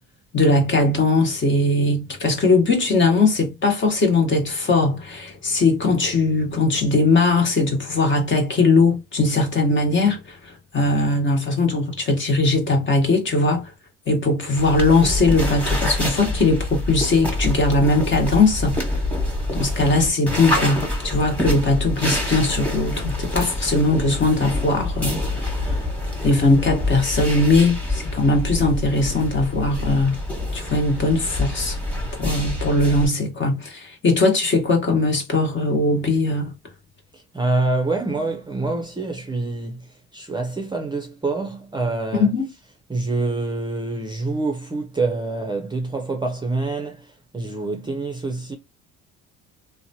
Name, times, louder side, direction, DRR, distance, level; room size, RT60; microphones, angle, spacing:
voice 1, 0.3-13.7 14.1-18.9 19.5-25.8 26.2-30.2 30.5-31.8 32.2-36.5 42.1-42.5, left 3 dB, 40° left, 1.2 m, -20 dB
sound 1, 14.6-33.1, left 1 dB, 5° left, 1.3 m, -26 dB
voice 2, 37.3-39.8 40.1-42.3 42.9-47.1 47.3-48.6, right 3 dB, 15° right, 0.6 m, -26 dB
2.8 x 2.2 x 2.7 m
supercardioid pair, 80°, 31 cm